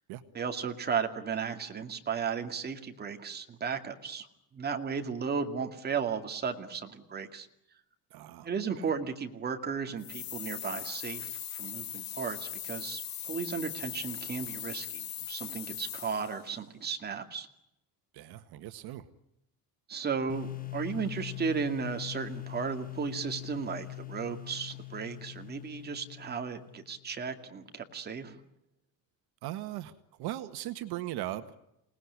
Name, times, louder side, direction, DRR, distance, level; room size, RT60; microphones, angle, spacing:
voice 1, 0.3-4.3 4.5-7.5 8.4-17.5 19.9-28.4, right 6 dB, 25° right, 5 dB, 2.4 m, -35 dB
voice 2, 8.1-8.5 8.8-8.9 18.1-19.1 29.4-29.9 30.2-31.6, right 14 dB, 75° right, 9 dB, 1.7 m, -38 dB
sound 1, 10.0-16.4, left 11 dB, 60° left, 4.0 m, -40 dB
sound 2, 20.3-27.1, left 20 dB, 20° left, 1.4 m, -42 dB
28.0 x 19.5 x 9.8 m, 0.84 s
cardioid pair, 160°, 39 cm